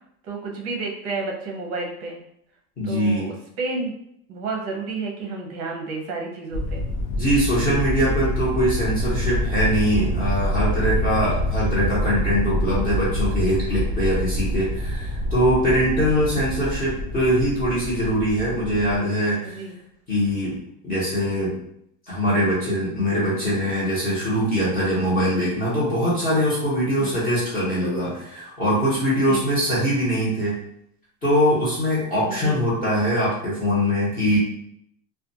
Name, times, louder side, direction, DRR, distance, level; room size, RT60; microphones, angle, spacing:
voice 1, 0.2-2.2 2.8-3.9 4.3-6.8 16.2-16.3 19.4-19.8 27.0-27.1 29.2-29.5 32.3-32.6, right 3 dB, 35° right, 0 dB, 0.6 m, -31 dB
voice 2, 2.8-3.3 7.1-19.6 20.1-20.6 20.8-21.5 22.1-30.6 31.2-34.4, equal, 20° left, -8 dB, 0.9 m, -22 dB
sound 1, 6.5-19.0, equal, 80° left, 0.7 m, -26 dB
2.4 x 2.3 x 2.6 m, 0.72 s
cardioid pair, 165°, 41 cm